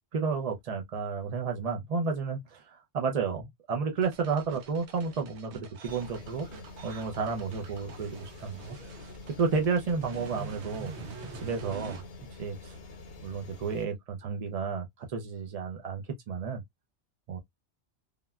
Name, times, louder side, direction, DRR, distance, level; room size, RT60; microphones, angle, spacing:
voice 1, 0.1-6.5 6.8-8.8 9.4-10.9 11.3-12.0 12.4-12.8 13.2-16.6 17.3-17.4, right 5 dB, 55° right, 0.4 m, -32 dB
sound 1, 4.0-12.0, right 4 dB, 80° right, 0.9 m, -45 dB
sound 2, 5.8-13.8, left 3 dB, 65° left, 0.9 m, -47 dB
3.5 x 2.1 x 2.2 m
omnidirectional pair, 1.2 m